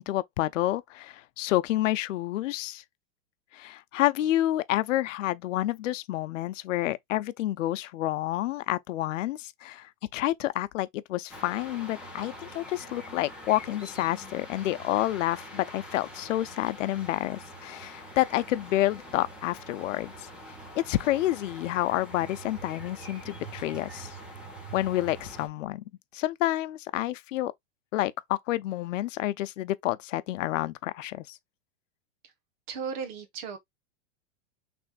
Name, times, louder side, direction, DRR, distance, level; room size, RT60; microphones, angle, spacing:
voice 1, 0.0-2.8 3.5-20.3 20.8-24.1 24.7-25.8 26.1-27.5 27.9-31.4, left 15 dB, 80° left, 0.7 m, -29 dB
sound 1, 11.3-25.5, right 1 dB, 5° right, 0.8 m, -44 dB
voice 2, 32.7-33.6, right 6 dB, 40° right, 1.2 m, -36 dB
6.1 x 3.4 x 2.3 m
supercardioid pair, 175°, 37 cm